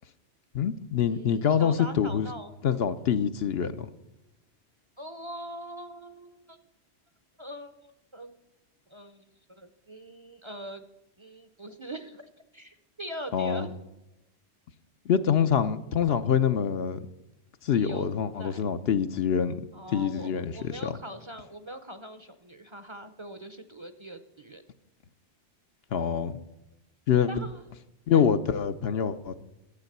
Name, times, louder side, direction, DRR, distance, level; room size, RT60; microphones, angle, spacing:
voice 1, 0.5-2.3 2.6-3.9 13.3-13.7 15.1-17.1 17.6-19.6 19.9-20.9 25.9-26.4 27.1-27.3 28.1-29.3, left 8 dB, 65° left, 10 dB, 0.9 m, -25 dB
voice 2, 1.1-2.5 5.0-6.6 7.4-8.4 8.9-9.2 9.6-10.8 11.2-13.7 17.7-18.1 18.4-18.7 19.7-24.6 27.3-27.6 28.1-28.3, right 1 dB, 30° right, 9 dB, 0.7 m, -42 dB
12.0 x 8.3 x 6.6 m, 0.94 s
omnidirectional pair, 1.2 m